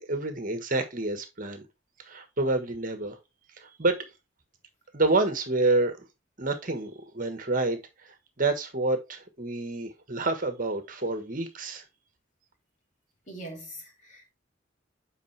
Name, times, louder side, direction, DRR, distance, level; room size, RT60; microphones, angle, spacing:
voice 1, 0.1-1.6 2.0-3.2 3.6-4.1 4.9-6.1 6.4-11.8, right 2 dB, 45° right, 1.4 m, -28 dB
voice 2, 13.3-14.3, right 1 dB, 40° left, 2.9 m, -42 dB
8.5 x 5.1 x 3.3 m
head